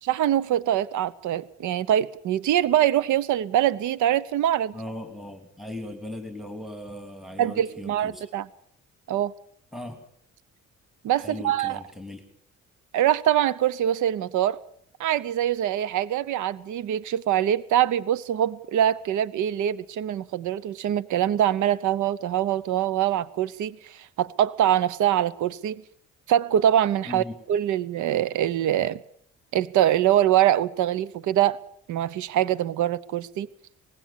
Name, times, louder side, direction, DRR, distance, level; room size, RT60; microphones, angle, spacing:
voice 1, 0.0-4.7 7.4-8.5 9.1-9.3 11.0-11.8 12.9-14.6 15.0-25.8 26.3-29.0 29.5-31.6 31.9-33.5, right 11 dB, 75° right, 0.8 m, -24 dB
voice 2, 4.7-8.3 9.7-10.0 11.2-12.2 27.0-27.4, left 1 dB, ahead, 2.9 m, -38 dB
20.0 x 16.0 x 8.6 m
cardioid pair, 90°, 30 cm